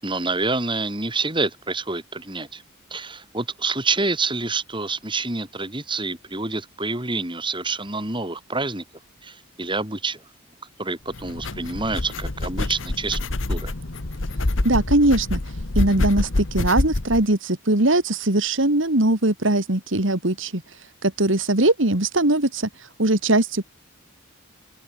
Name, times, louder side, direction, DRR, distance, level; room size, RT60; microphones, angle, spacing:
voice 1, 0.0-2.6 2.9-8.8 9.2-10.2 10.8-13.2 13.5-13.7, right 3 dB, 25° right, 5.4 m, -27 dB
sound 1, 11.1-17.2, left 2 dB, 65° left, 1.4 m, -26 dB
voice 2, 14.6-15.4 15.8-20.6 21.0-23.6, right 2 dB, 65° right, 2.7 m, -20 dB
head